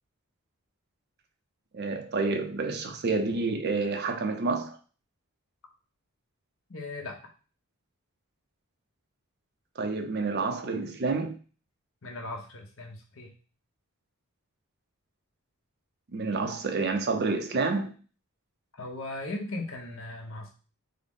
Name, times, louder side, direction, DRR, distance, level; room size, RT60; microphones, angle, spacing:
voice 1, 1.7-4.8 9.8-11.4 16.1-17.9, right 3 dB, 45° right, 0.5 m, -29 dB
voice 2, 6.7-7.2 12.0-13.3 18.7-20.5, left 2 dB, 60° left, 0.8 m, -38 dB
3.7 x 2.0 x 3.5 m
head